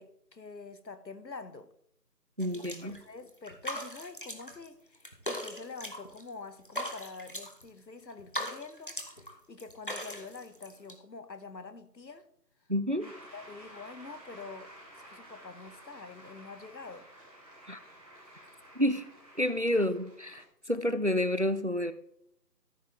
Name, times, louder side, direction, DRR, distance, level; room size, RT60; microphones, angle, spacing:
voice 1, 0.0-1.7 2.5-12.3 13.0-17.1 19.7-19.9, left 4 dB, 85° left, 1.3 m, -46 dB
sound 1, 2.4-3.0 3.3-4.7 4.9-6.3 6.6-7.7 8.1-9.3 9.6-10.9, equal, 30° left, 0.9 m, -39 dB
voice 2, 2.4-3.0 12.7-13.1 17.7-17.8 18.8-19.1 19.4-21.9, left 1 dB, 45° right, 0.4 m, -29 dB
Shout / Cheering / Applause, 13.0-20.4, right 1 dB, 5° left, 1.8 m, -52 dB
13.5 x 7.1 x 3.1 m
figure-of-eight pair, 170°, 50 cm